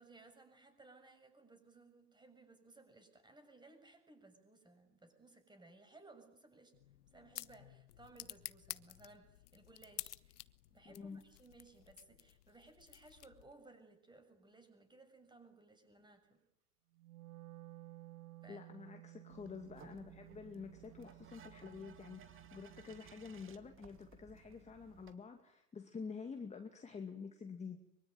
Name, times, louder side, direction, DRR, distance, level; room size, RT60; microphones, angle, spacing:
voice 1, 0.0-6.7 7.1-16.4 18.4-18.7, right 2 dB, 10° right, 7 dB, 7.1 m, -61 dB
sound 1, 6.7-13.6, left 13 dB, 80° left, 1.3 m, -52 dB
voice 2, 10.9-11.2 18.5-27.8, left 5 dB, 15° left, 5 dB, 2.3 m, -48 dB
Wind instrument woodwind instrument, 16.9-23.2, right 19 dB, 80° right, 1.4 m, -56 dB
sound 2, 19.3-25.1, right 7 dB, 25° right, 2.5 m, -60 dB
24.0 x 24.0 x 9.3 m, 0.78 s
hypercardioid pair, 120°, 45 cm